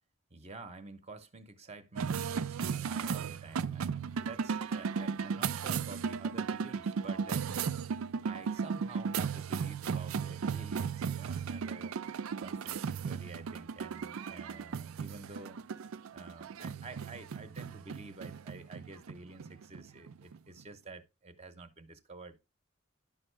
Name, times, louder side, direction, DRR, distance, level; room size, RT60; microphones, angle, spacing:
voice 1, 0.3-15.6 16.1-22.4, right 3 dB, 30° right, 0.9 m, -49 dB
sound 1, 2.0-20.6, right 6 dB, 85° right, 0.4 m, -36 dB
10.5 x 5.4 x 3.3 m
head